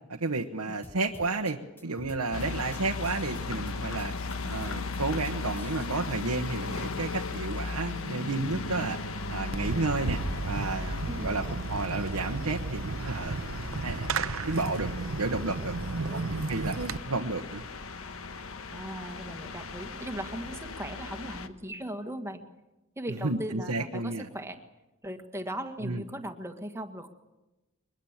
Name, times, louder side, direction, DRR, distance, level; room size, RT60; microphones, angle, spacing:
voice 1, 0.1-4.1 4.4-13.4 13.8-14.1 14.5-17.6 23.2-24.3 25.8-26.0, right 3 dB, 90° right, 3 dB, 1.2 m, -32 dB
sound 1, 0.8-5.9, left 1 dB, 10° left, 0.9 m, -48 dB
sound 2, 2.3-21.5, left 3 dB, 65° left, 1.3 m, -37 dB
Fireworks, 9.5-17.0, right 3 dB, 65° right, 0.8 m, -34 dB
voice 2, 11.1-11.4 15.9-16.3 18.7-22.4 22.9-24.6 25.0-27.1, equal, 10° right, 6 dB, 1.7 m, -38 dB
23.0 x 21.0 x 7.4 m, 1.0 s
head